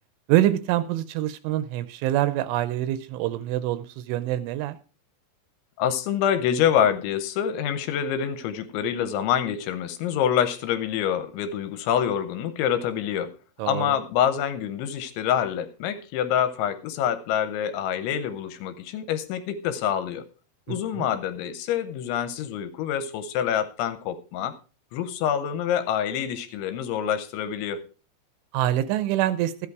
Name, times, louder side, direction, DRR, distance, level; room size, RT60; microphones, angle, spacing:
voice 1, 0.3-4.8 13.6-13.9 20.7-21.1 28.5-29.5, right 13 dB, 80° right, 13 dB, 2.9 m, -25 dB
voice 2, 5.8-13.3 13.7-20.2 20.7-24.5 24.9-27.8, left 9 dB, 80° left, 11 dB, 3.0 m, -26 dB
13.5 x 8.5 x 4.7 m, 0.35 s
omnidirectional pair, 5.7 m